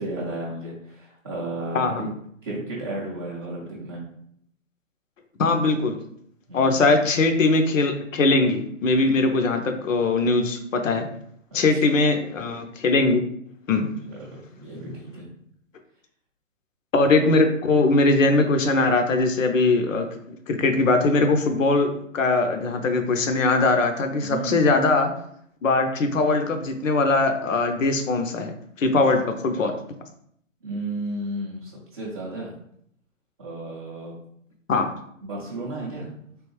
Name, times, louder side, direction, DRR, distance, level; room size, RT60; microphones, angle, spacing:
voice 1, 0.0-2.1 2.4-4.0 6.5-7.1 11.5-12.0 14.1-15.3 24.2-24.6 30.6-32.6 33.4-34.1 35.2-36.1, right 2 dB, 20° right, -9 dB, 0.4 m, -33 dB
voice 2, 1.7-2.1 5.4-6.0 6.5-11.1 11.5-13.2 13.7-13.9 16.9-20.1 20.5-25.1 25.6-29.7 34.7-34.9, left 3 dB, 75° left, 6 dB, 0.7 m, -21 dB
3.4 x 2.5 x 3.1 m, 0.68 s
hypercardioid pair, 135°, 39 cm